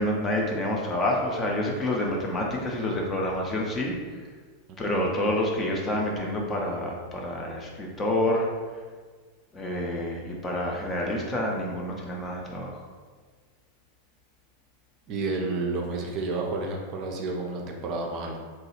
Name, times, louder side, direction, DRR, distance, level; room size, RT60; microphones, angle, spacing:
voice 1, 0.0-4.0 4.8-8.5 9.5-12.8, left 1 dB, 20° left, -1 dB, 0.5 m, -28 dB
voice 2, 15.1-18.4, right 3 dB, 40° right, 1 dB, 0.4 m, -30 dB
3.0 x 2.3 x 3.0 m, 1.5 s
figure-of-eight pair, 90°, 0 cm